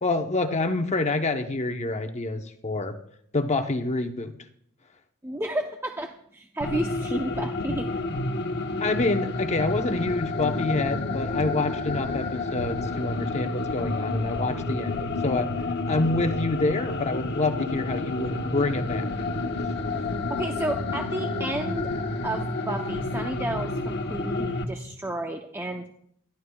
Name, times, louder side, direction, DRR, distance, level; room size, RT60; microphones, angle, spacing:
voice 1, 0.0-3.0 3.3-4.3 8.8-15.5 15.9-19.0, left 2 dB, 30° left, 6 dB, 0.9 m, -27 dB
voice 2, 5.2-7.9 20.3-21.9 22.2-25.8, right 1 dB, 10° right, 3 dB, 0.7 m, -31 dB
sound 1, 6.6-24.7, left 2 dB, 50° left, 1.2 m, -30 dB
22.0 x 13.0 x 2.3 m, 0.68 s
head